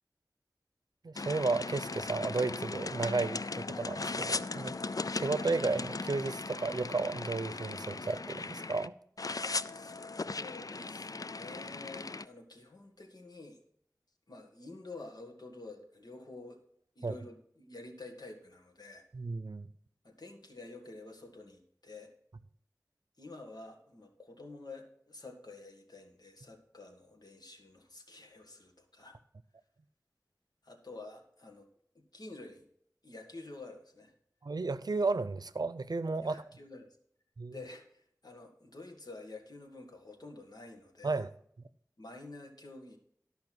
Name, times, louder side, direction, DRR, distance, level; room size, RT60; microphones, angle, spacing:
voice 1, 1.0-4.8 5.1-8.9 17.0-17.2 19.1-19.7 34.4-36.4 37.4-37.5 41.0-41.3, right 3 dB, 90° right, 0.6 m, -33 dB
sound 1, 1.2-8.9 9.2-12.3, left 3 dB, 65° left, 0.4 m, -38 dB
voice 2, 9.7-13.6 14.3-16.6 17.0-19.0 20.0-22.1 23.2-29.2 30.6-31.7 32.0-32.7 33.0-34.1 36.2-37.0 37.5-41.2 42.0-43.0, left 2 dB, 85° left, 2.0 m, -49 dB
13.0 x 5.7 x 6.1 m
wide cardioid pair, 50°, 7 cm